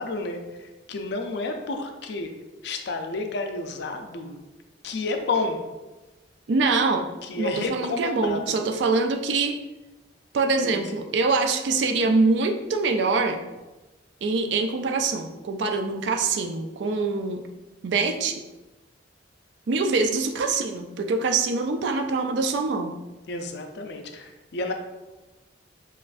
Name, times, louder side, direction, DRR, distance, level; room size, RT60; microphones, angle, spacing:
voice 1, 0.0-2.3 2.6-4.4 4.8-5.7 7.2-8.6 10.6-11.1 23.3-24.7, left 3 dB, 65° left, 5 dB, 0.5 m, -30 dB
voice 2, 6.5-7.1 7.4-9.5 10.3-13.4 14.2-17.4 17.8-18.4 19.7-22.9, right 3 dB, 70° right, 5 dB, 0.4 m, -24 dB
7.2 x 2.5 x 2.5 m, 1.1 s
head